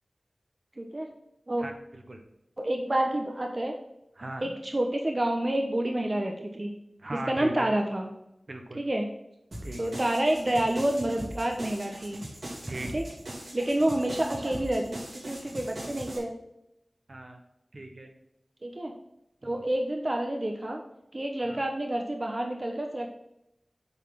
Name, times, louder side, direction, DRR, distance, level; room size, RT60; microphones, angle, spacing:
voice 1, 0.8-1.1 1.5-1.7 2.6-3.7 4.4-6.7 7.1-8.1 8.7-9.1 9.8-12.2 12.9-13.0 13.5-16.3 18.6-18.9 19.4-20.8 21.1-23.1, right 1 dB, 40° right, 2 dB, 1.0 m, -28 dB
voice 2, 1.6-2.2 4.2-4.6 7.0-7.7 8.5-8.8 9.6-9.9 12.7-12.9 14.3-14.8 17.1-17.4 17.7-18.1 19.4-19.6 21.4-21.6, right 2 dB, 65° right, 4 dB, 1.2 m, -39 dB
sound 1, 9.5-16.2, right 1 dB, 80° right, 2.9 m, -40 dB
8.0 x 4.2 x 5.8 m, 0.84 s
cardioid pair, 40°, 0 cm